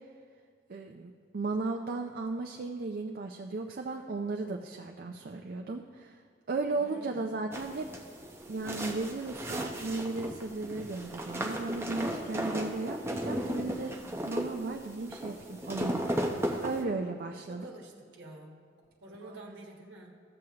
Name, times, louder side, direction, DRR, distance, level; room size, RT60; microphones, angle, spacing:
voice 1, 0.7-6.2 6.5-7.9 8.5-14.0 14.2-17.6, right 3 dB, 55° right, 3 dB, 0.4 m, -35 dB
voice 2, 6.7-7.3 17.5-18.6 19.0-20.1, right 2 dB, 70° right, 0 dB, 1.4 m, -48 dB
sound 1, 7.5-16.8, equal, 15° right, 0.7 m, -35 dB
14.0 x 7.7 x 2.9 m, 2.1 s
head